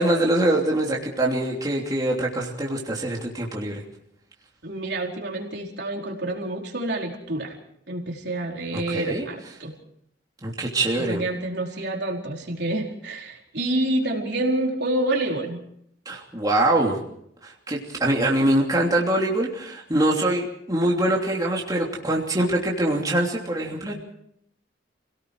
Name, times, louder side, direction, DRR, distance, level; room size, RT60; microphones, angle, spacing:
voice 1, 0.0-3.8 8.7-9.2 10.4-11.2 16.0-17.0 17.4-23.9, right 1 dB, 20° right, -2 dB, 3.0 m, -23 dB
voice 2, 4.6-7.6 7.9-9.7 11.0-15.6, right 1 dB, 60° right, 0 dB, 4.5 m, -28 dB
30.0 x 18.0 x 4.8 m, 0.70 s
head